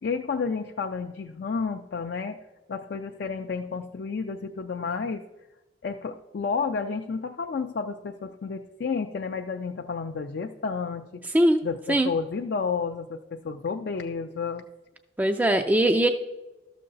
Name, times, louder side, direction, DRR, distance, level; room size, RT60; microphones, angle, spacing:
voice 1, 0.0-2.4 2.7-5.3 5.8-11.2 11.6-14.6, left 5 dB, 65° left, 3 dB, 0.4 m, -31 dB
voice 2, 15.2-16.1, right 1 dB, 10° right, 6 dB, 0.3 m, -20 dB
12.5 x 6.6 x 3.9 m, 1.1 s
head